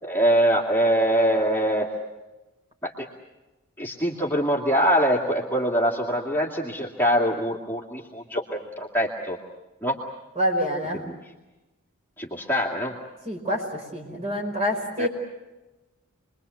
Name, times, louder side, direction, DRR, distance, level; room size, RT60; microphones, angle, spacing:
voice 1, 0.0-1.9 2.8-3.1 3.8-9.4 9.8-10.0 10.9-11.2 12.2-12.9 15.0-15.1, equal, 10° left, -2 dB, 2.2 m, -23 dB
voice 2, 10.4-11.0 13.3-15.1, equal, 30° right, 2 dB, 5.2 m, -27 dB
28.5 x 22.0 x 8.3 m, 1.1 s
head